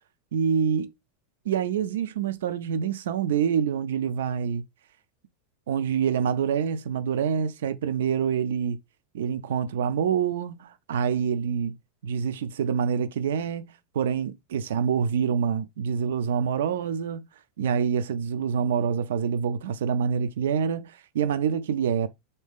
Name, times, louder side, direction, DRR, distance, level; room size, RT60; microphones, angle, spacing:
voice 1, 0.3-0.9 1.5-4.6 5.7-8.8 9.1-11.8 12.0-17.2 17.6-22.1, right 7 dB, 85° right, 0.4 m, -26 dB
3.6 x 2.7 x 3.5 m
supercardioid pair, 180°, 0 cm